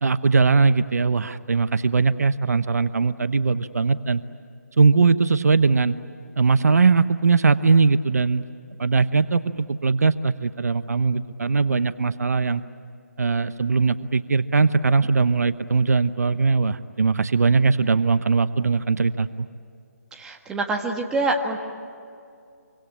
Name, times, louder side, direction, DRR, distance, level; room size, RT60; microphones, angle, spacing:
voice 1, 0.0-4.2 4.8-6.0 6.4-8.4 8.8-12.6 13.2-19.5, right 4 dB, 65° right, 13 dB, 0.9 m, -20 dB
voice 2, 20.1-21.6, right 2 dB, 5° right, 1 dB, 1.6 m, -26 dB
26.5 x 25.0 x 8.7 m, 2.4 s
figure-of-eight pair, 155°, 9 cm